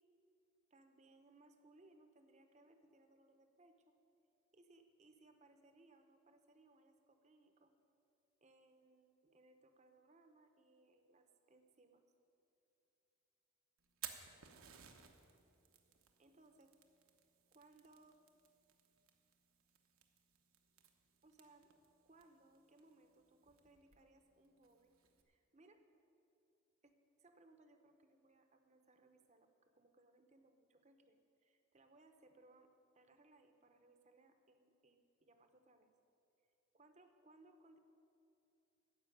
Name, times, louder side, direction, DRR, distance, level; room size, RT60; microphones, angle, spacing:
voice 1, 0.7-3.9 4.5-7.7 8.4-12.0 16.2-16.7 17.5-18.2 21.2-21.7 22.0-25.0 25.3-25.8 26.8-26.9 27.2-35.9 36.7-37.8, right 2 dB, 30° right, 7 dB, 0.8 m, -67 dB
Fire, 13.8-25.2, right 9 dB, 80° right, 1.1 m, -59 dB
15.0 x 5.7 x 9.8 m, 2.8 s
head